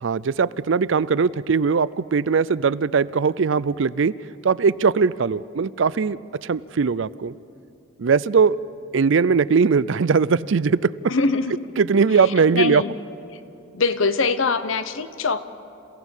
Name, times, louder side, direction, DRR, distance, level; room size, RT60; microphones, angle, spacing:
voice 1, 0.0-4.1 4.4-7.3 8.0-8.6 8.9-10.9 11.8-12.8, right 5 dB, 70° right, 18 dB, 0.5 m, -20 dB
voice 2, 11.1-11.6 12.1-13.0 13.3-13.4 13.7-15.4, left 4 dB, 80° left, 12 dB, 0.9 m, -23 dB
28.5 x 16.5 x 7.3 m, 2.8 s
head